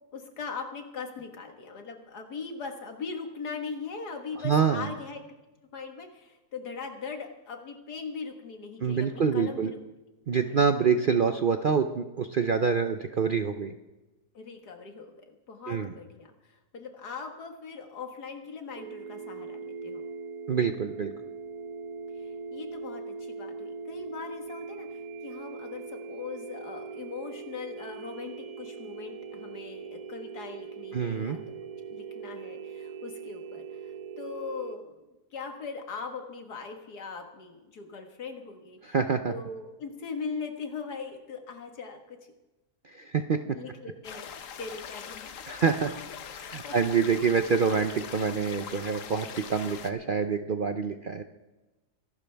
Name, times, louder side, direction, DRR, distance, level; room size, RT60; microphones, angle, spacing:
voice 1, 0.1-5.2 5.7-9.8 14.3-20.0 22.2-31.4 31.9-35.0 35.3-39.0 39.3-42.2 43.5-44.3 44.6-45.3 46.6-46.7, left 5 dB, 85° left, 4 dB, 2.2 m, -40 dB
voice 2, 4.4-4.9 8.8-9.7 10.3-13.7 15.7-15.9 20.5-21.1 30.9-31.4 38.8-39.3 42.8-43.4 45.5-45.9 46.3-51.2, right 6 dB, 55° right, 7 dB, 0.6 m, -26 dB
sound 1, 18.8-34.8, right 5 dB, 90° right, 1.3 m, -41 dB
sound 2, 44.0-49.9, left 8 dB, 60° left, 1.1 m, -42 dB
24.0 x 12.0 x 3.4 m, 1.1 s
omnidirectional pair, 1.7 m